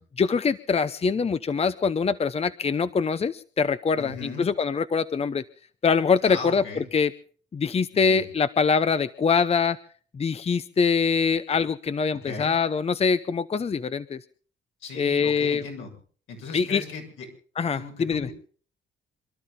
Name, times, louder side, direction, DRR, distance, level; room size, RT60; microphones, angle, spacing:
voice 1, 0.2-5.4 5.8-7.1 7.5-9.8 10.1-14.2 15.0-15.6 16.5-16.8 17.6-18.3, left 5 dB, 30° left, 13 dB, 0.7 m, -24 dB
voice 2, 3.9-4.5 6.2-6.8 7.9-8.3 12.2-12.5 14.8-15.9 16.3-17.3 17.7-18.3, left 4 dB, 80° left, 1 dB, 6.6 m, -37 dB
27.5 x 12.5 x 3.7 m, 0.43 s
cardioid pair, 90°, 20 cm